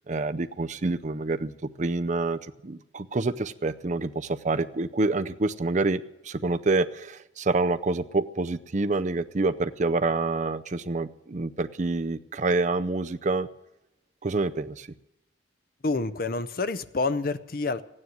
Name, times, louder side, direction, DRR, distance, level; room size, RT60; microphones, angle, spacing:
voice 1, 0.1-1.5 1.8-13.5 14.2-14.9, right 3 dB, 40° right, 10 dB, 0.6 m, -27 dB
voice 2, 15.8-17.8, left 3 dB, 50° left, 12 dB, 0.7 m, -28 dB
14.5 x 9.7 x 9.2 m, 0.89 s
head